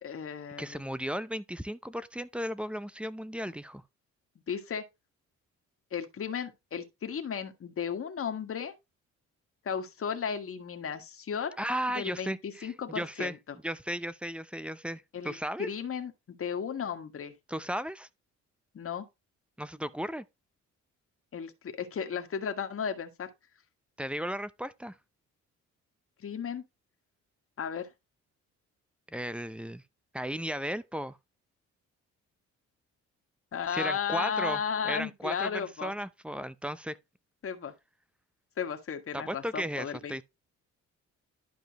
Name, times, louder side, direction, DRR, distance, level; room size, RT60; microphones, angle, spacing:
voice 1, 0.0-0.9 4.5-4.8 5.9-8.7 9.6-11.6 11.9-13.4 15.1-17.3 18.7-19.1 21.3-23.3 26.2-26.6 27.6-27.9 33.5-35.9 37.4-37.7 38.6-40.2, left 7 dB, 45° left, 1.7 m, -34 dB
voice 2, 0.6-3.8 11.6-13.4 13.6-15.7 17.5-18.1 19.6-20.2 24.0-25.0 29.1-29.8 30.1-31.2 33.7-37.0 39.1-40.2, equal, 5° right, 0.6 m, -35 dB
11.5 x 5.0 x 2.9 m
cardioid pair, 90°, 30 cm